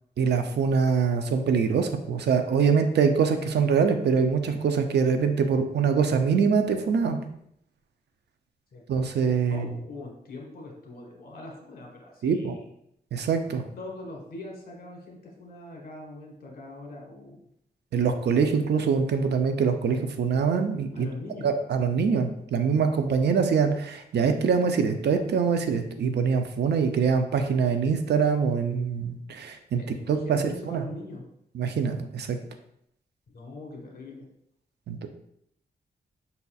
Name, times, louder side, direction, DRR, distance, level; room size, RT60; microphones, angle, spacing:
voice 1, 0.2-7.2 8.9-9.7 12.2-12.6 13.1-13.6 17.9-21.1 21.4-29.8 30.1-30.8 31.5-32.4 34.9-35.1, right 6 dB, 80° right, 7 dB, 0.5 m, -24 dB
voice 2, 9.4-12.6 13.8-17.4 20.9-21.5 29.8-31.2 33.3-34.3, left 2 dB, 60° left, 0 dB, 1.3 m, -42 dB
5.5 x 4.1 x 2.4 m, 0.74 s
wide cardioid pair, 145°, 17 cm